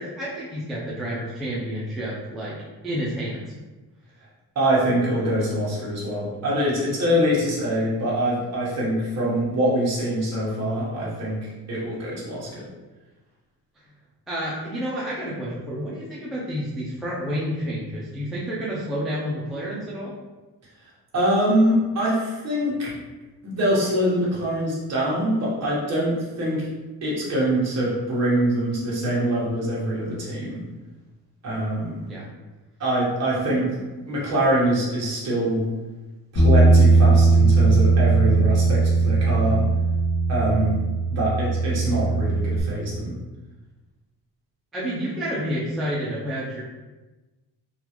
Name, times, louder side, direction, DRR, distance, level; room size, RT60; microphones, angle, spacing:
voice 1, 0.0-2.6 2.8-3.5 7.2-7.5 14.3-20.1 32.1-32.3 44.7-46.6, equal, ahead, -8 dB, 0.4 m, -30 dB
voice 2, 4.5-12.7 21.1-22.9 23.4-26.7 27.0-30.6 31.4-32.1 32.8-35.7 36.3-39.7 40.3-40.8 41.1-43.1, right 1 dB, 40° right, -6 dB, 1.1 m, -24 dB
Bass guitar, 36.4-42.6, right 3 dB, 75° left, 1.2 m, -18 dB
3.8 x 2.4 x 2.9 m, 1.1 s
cardioid pair, 170°, 40 cm